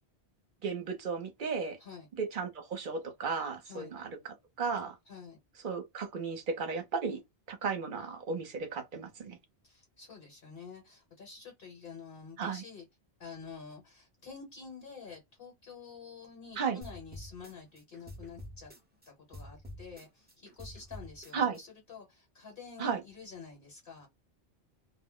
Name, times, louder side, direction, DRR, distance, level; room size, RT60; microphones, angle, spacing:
voice 1, 0.6-1.8 2.2-4.1 4.6-5.0 5.6-7.2 7.5-9.4 12.4-12.6 16.6-16.8 21.3-21.6 22.8-23.0, right 5 dB, 55° right, 0.8 m, -34 dB
voice 2, 5.1-5.4 9.6-12.9 13.2-18.7 19.1-24.1, left 5 dB, 60° left, 1.2 m, -48 dB
sound 1, 16.8-19.1 19.3-21.6, left 1 dB, 10° right, 0.7 m, -48 dB
2.3 x 2.0 x 3.7 m
omnidirectional pair, 1.1 m